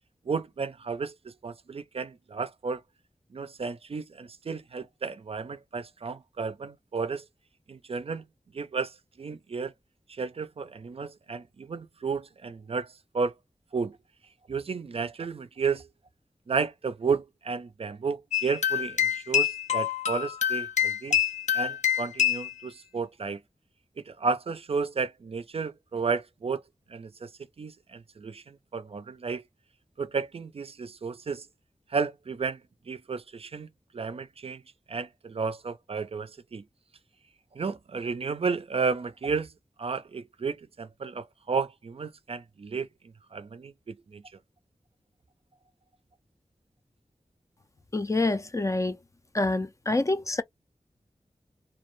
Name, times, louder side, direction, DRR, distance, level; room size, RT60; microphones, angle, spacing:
voice 1, 0.3-2.8 3.3-7.3 7.7-8.3 8.5-9.7 10.1-13.3 13.7-14.0 14.5-15.9 16.5-21.2 21.5-23.4 24.0-26.6 26.9-27.3 27.6-29.4 30.0-31.5 31.9-34.6 34.9-36.6 37.5-39.5 39.8-44.2, right 5 dB, 55° right, 0.4 m, -33 dB
sound 1, 18.3-22.5, left 9 dB, 90° left, 0.6 m, -26 dB
voice 2, 47.9-49.0 49.3-50.4, left 2 dB, 25° left, 0.4 m, -26 dB
2.3 x 2.1 x 3.0 m
wide cardioid pair, 70°, 12 cm